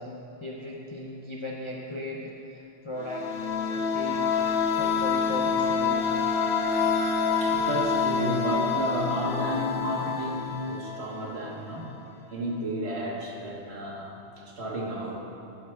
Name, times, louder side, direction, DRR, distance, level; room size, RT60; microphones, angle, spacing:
voice 1, 0.0-3.3 3.7-4.4 4.8-6.1, left 1 dB, 40° left, -3 dB, 0.4 m, -37 dB
sound 1, 3.0-11.6, left 5 dB, 60° left, 0.8 m, -27 dB
voice 2, 6.7-11.9 12.3-14.2 14.6-15.2, equal, 65° right, -3 dB, 1.4 m, -32 dB
11.0 x 5.7 x 3.2 m, 2.7 s
omnidirectional pair, 1.2 m